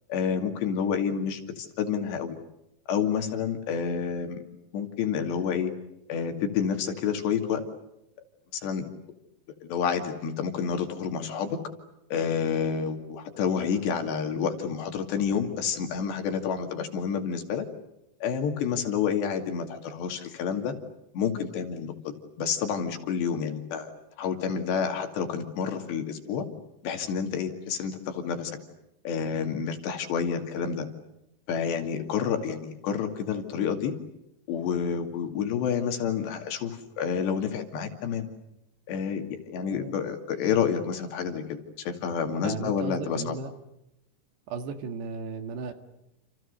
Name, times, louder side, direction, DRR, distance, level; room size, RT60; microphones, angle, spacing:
voice 1, 0.1-2.4 2.9-4.4 4.7-5.7 6.1-7.6 8.6-8.9 9.6-11.6 12.1-17.7 18.2-20.7 21.1-26.5 26.8-28.6 29.0-30.9 31.5-33.9 34.5-38.3 38.9-43.4, left 7 dB, 65° left, 6 dB, 4.5 m, -29 dB
voice 2, 42.4-43.5 44.5-45.7, right 5 dB, 65° right, 7 dB, 3.9 m, -35 dB
30.0 x 29.0 x 6.8 m, 0.84 s
omnidirectional pair, 5.5 m